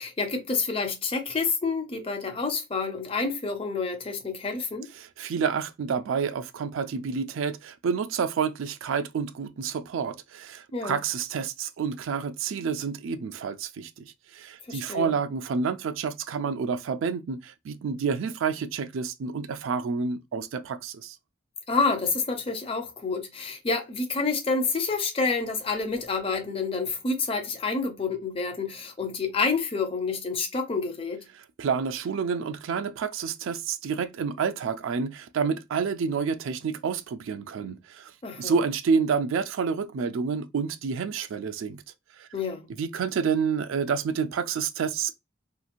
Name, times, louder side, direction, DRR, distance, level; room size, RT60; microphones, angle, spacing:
voice 1, 0.0-4.9 10.7-11.0 14.7-15.1 21.7-31.2 38.2-38.6 42.3-42.7, left 4 dB, 25° left, 0.5 m, -28 dB
voice 2, 5.0-14.0 14.3-21.2 31.6-38.1 38.4-41.8 42.2-42.3 42.8-45.1, right 6 dB, 70° right, 0.3 m, -29 dB
2.9 x 2.4 x 2.5 m
head